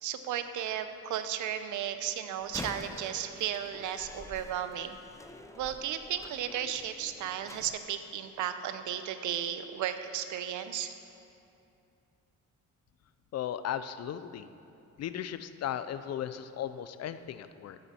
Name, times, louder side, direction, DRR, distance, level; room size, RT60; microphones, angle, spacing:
voice 1, 0.0-5.0 5.6-10.9, right 10 dB, 80° right, 10 dB, 0.7 m, -34 dB
Slam, 2.4-7.8, left 2 dB, 10° left, 0.5 m, -47 dB
voice 2, 13.3-14.5 15.0-17.8, left 10 dB, 55° left, 12 dB, 0.5 m, -36 dB
12.5 x 8.4 x 4.3 m, 2.7 s
cardioid pair, 90°, 30 cm